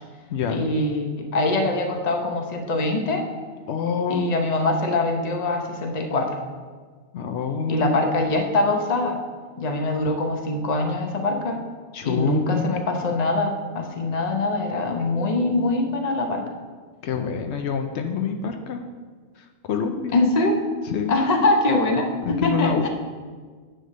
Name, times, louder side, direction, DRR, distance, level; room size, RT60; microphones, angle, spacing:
voice 1, 0.5-3.2 4.1-6.4 7.7-9.2 9.6-11.6 12.0-16.4 20.1-20.6 21.1-22.9, left 2 dB, 40° left, 3 dB, 0.9 m, -23 dB
voice 2, 3.7-4.2 7.1-7.9 11.9-12.7 17.0-18.8 19.4-20.1 20.9-21.1 22.2-22.9, left 6 dB, 80° left, 5 dB, 0.9 m, -26 dB
10.0 x 3.4 x 6.6 m, 1.5 s
omnidirectional pair, 1.1 m